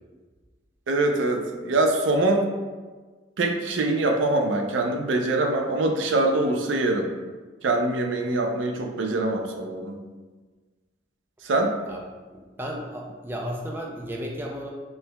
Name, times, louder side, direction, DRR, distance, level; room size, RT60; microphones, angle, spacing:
voice 1, 0.9-2.5 3.4-7.1 7.6-10.0 11.4-11.7, right 2 dB, 75° right, 4 dB, 0.4 m, -24 dB
voice 2, 12.3-14.7, equal, 10° right, 0 dB, 0.3 m, -34 dB
4.4 x 3.3 x 2.2 m, 1.3 s
head